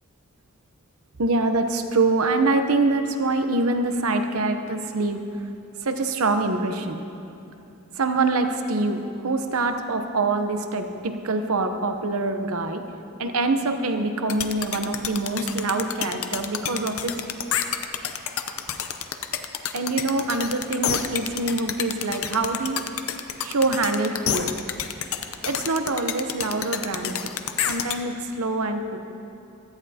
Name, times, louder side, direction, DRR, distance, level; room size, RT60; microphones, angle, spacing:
voice 1, 1.2-5.2 5.8-7.0 7.9-12.8 13.2-17.2 19.7-22.8 23.4-24.5 25.5-27.3 27.7-29.0, right 3 dB, 75° right, 7 dB, 0.8 m, -25 dB
sound 1, 14.3-28.0, left 9 dB, 70° left, 0.6 m, -28 dB
17.0 x 13.5 x 2.8 m, 2.7 s
head